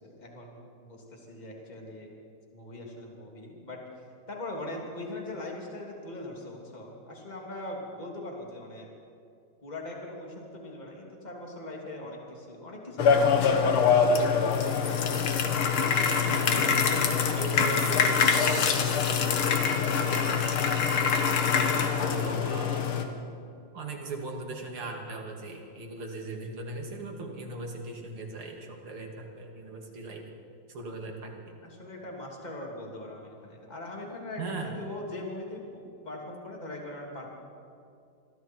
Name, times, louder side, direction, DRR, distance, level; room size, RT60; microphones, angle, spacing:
voice 1, 0.0-2.1 2.5-3.8 4.3-8.9 9.6-15.1 31.6-37.3, left 1 dB, 20° left, -1 dB, 3.1 m, -41 dB
sound 1, 13.0-23.1, left 6 dB, 80° left, 2.3 m, -24 dB
voice 2, 16.3-20.6 21.4-22.9 23.7-30.2 30.7-31.6 34.4-34.7, right 3 dB, 85° right, 1 dB, 3.5 m, -39 dB
28.0 x 22.5 x 4.7 m, 2.5 s
omnidirectional pair, 2.3 m